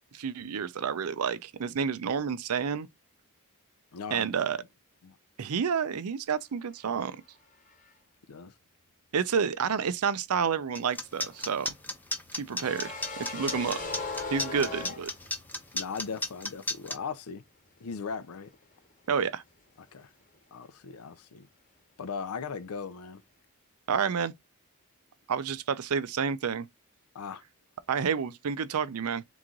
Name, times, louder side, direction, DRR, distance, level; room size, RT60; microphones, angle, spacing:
voice 1, 0.1-2.9 4.1-4.6 5.4-7.2 9.1-11.7 12.4-12.9 13.2-13.8 14.3-15.1 19.1-19.4 23.9-24.3 25.3-26.7 27.9-29.2, right 6 dB, 80° right, 0.5 m, -29 dB
voice 2, 3.9-4.3 5.0-5.2 8.3-8.5 12.5-12.6 14.5-14.7 15.7-17.4 17.8-18.5 19.8-20.1 20.5-21.5 22.0-23.2 27.1-27.4, left 5 dB, 80° left, 0.5 m, -38 dB
sound 1, 10.7-17.0, left 2 dB, 10° left, 0.6 m, -33 dB
sound 2, 11.2-15.7 15.9-16.1 18.2-18.6 18.9-19.1, left 3 dB, 35° left, 1.1 m, -39 dB
3.7 x 3.1 x 3.7 m
head